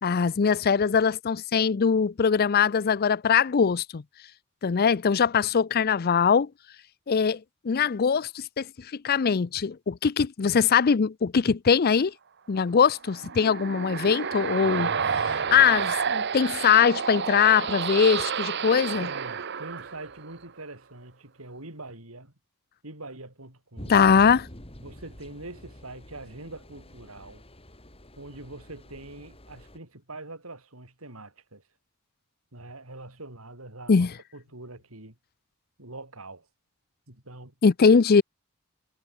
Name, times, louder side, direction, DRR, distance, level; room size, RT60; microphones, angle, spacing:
voice 1, 0.0-4.0 4.6-6.5 7.1-7.4 7.6-8.7 8.9-12.1 12.5-19.1 23.9-24.5 33.9-34.1 37.6-38.2, left 6 dB, 45° left, 0.5 m, -22 dB
sound 1, 12.9-20.4, right 6 dB, 55° right, 1.1 m, -30 dB
voice 2, 19.0-22.3 22.8-24.0 24.8-27.4 28.2-31.6 32.5-35.2 35.8-36.5 37.1-37.5, right 2 dB, 85° right, 5.7 m, -43 dB
sound 2, 23.8-29.8, equal, 30° left, 4.5 m, -47 dB
head